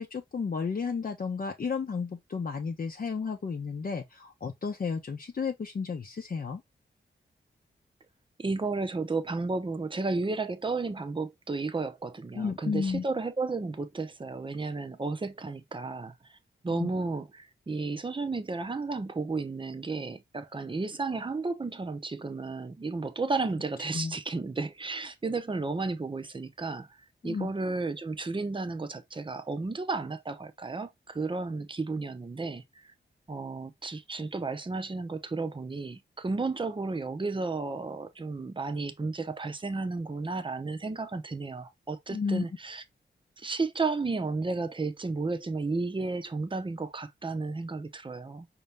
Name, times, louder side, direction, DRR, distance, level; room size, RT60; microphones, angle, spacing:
voice 1, 0.0-6.6 12.3-13.1 16.7-16.9 23.9-24.1 27.2-27.5 42.1-42.5, left 5 dB, 45° left, 0.7 m, -32 dB
voice 2, 8.4-16.1 16.6-26.9 27.2-32.9 33.3-42.8 43.4-48.5, right 3 dB, 25° right, 0.7 m, -33 dB
5.4 x 2.8 x 3.3 m
wide cardioid pair, 90°, 20 cm